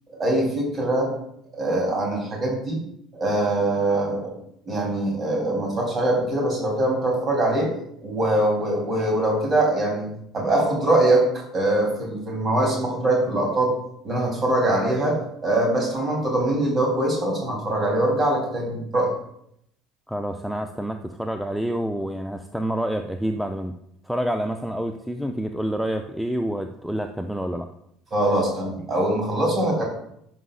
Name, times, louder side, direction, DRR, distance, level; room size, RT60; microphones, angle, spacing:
voice 1, 0.1-1.1 1.5-2.8 3.1-4.3 4.7-7.7 8.0-10.1 10.3-11.2 11.5-13.7 14.0-19.1 28.1-29.8, right 1 dB, 30° right, -1 dB, 3.2 m, -22 dB
voice 2, 20.1-23.7 24.0-27.7, right 1 dB, ahead, 6 dB, 0.5 m, -28 dB
11.0 x 6.5 x 2.4 m, 0.74 s
figure-of-eight pair, 60°, 0 cm